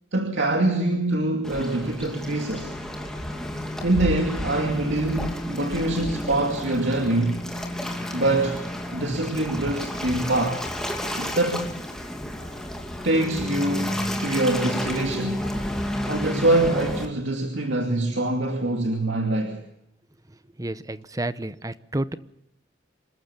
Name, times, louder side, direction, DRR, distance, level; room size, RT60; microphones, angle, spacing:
voice 1, 0.1-2.7 3.8-7.4 8.1-8.6 8.9-10.7 11.2-11.7 13.0-15.4 16.1-19.6, right 2 dB, 75° right, 3 dB, 2.5 m, -24 dB
Waves surf, 1.4-17.0, equal, 5° left, 2.6 m, -31 dB
voice 2, 20.3-22.1, right 1 dB, 20° right, 14 dB, 0.9 m, -31 dB
27.0 x 14.5 x 7.0 m, 0.82 s
head